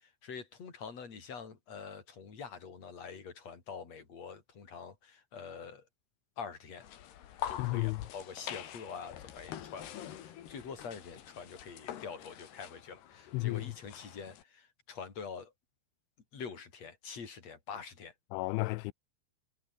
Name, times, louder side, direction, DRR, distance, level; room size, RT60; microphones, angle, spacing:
voice 1, 0.0-5.9 6.4-6.9 7.5-9.9 10.2-15.5 16.3-18.1, left 6 dB, 35° left, 5.0 m, -45 dB
sound 1, 6.8-14.4, left 11 dB, 65° left, 3.9 m, -45 dB
voice 2, 7.6-8.0 13.3-13.7 18.3-18.9, left 23 dB, 90° left, 3.0 m, -32 dB
omnidirectional pair, 5.2 m